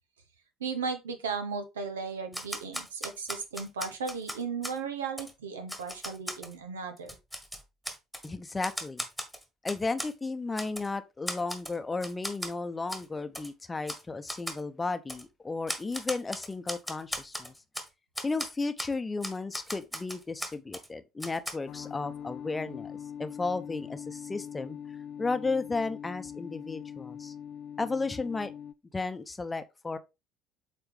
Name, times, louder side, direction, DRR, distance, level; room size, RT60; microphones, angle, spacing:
voice 1, 0.6-7.1, right 5 dB, 75° right, 1.1 m, -36 dB
Typewriter, 2.3-4.8 5.2-5.3 5.7-6.5 7.0-8.3 8.6-10.1 10.6-10.9 11.3-11.8 12.0-12.5 12.9-13.0 13.3-13.5 13.9-14.0 14.3-14.6 15.1-15.2 15.7-17.9 18.1-18.5 18.8-18.9 19.2-20.9 21.2-21.5, equal, ahead, 1.7 m, -37 dB
voice 2, 8.2-9.0 9.6-17.5 18.2-24.8 25.2-27.3 27.8-28.5 28.9-30.0, left 3 dB, 20° left, 0.8 m, -34 dB
sound 1, 21.7-28.7, left 9 dB, 45° left, 0.5 m, -42 dB
8.0 x 4.3 x 3.4 m
figure-of-eight pair, 55°, 0 cm